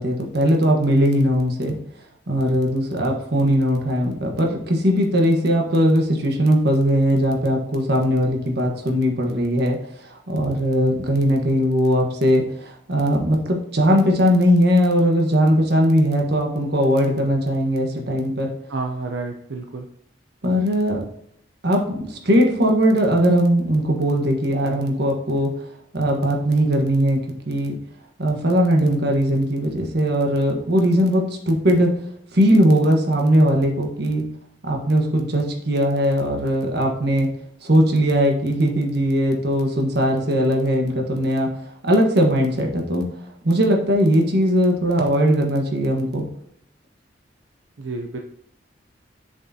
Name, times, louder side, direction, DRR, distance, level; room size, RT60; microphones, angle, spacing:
voice 1, 0.0-1.8 2.3-9.8 10.3-18.5 20.4-21.0 21.6-25.5 25.9-27.8 28.2-32.0 32.3-34.2 34.6-37.3 37.6-41.5 41.8-43.1 43.4-46.3, equal, 60° right, 1 dB, 1.4 m, -19 dB
voice 2, 18.7-19.9 47.8-48.2, right 3 dB, 85° right, 3 dB, 0.6 m, -30 dB
7.6 x 6.5 x 2.8 m, 0.71 s
head